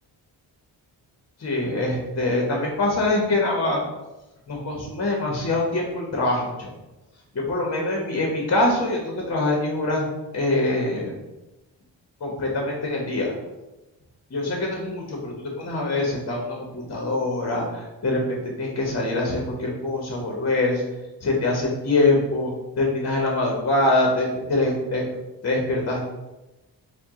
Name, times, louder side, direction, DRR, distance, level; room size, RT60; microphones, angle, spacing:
voice 1, 1.4-3.8 4.5-6.7 7.3-10.1 10.3-11.1 12.2-13.3 14.3-20.8 21.2-22.5 22.8-25.0 25.4-26.0, left 2 dB, 35° left, -1 dB, 0.9 m, -24 dB
4.5 x 2.3 x 3.6 m, 1.0 s
cardioid pair, 80°, 44 cm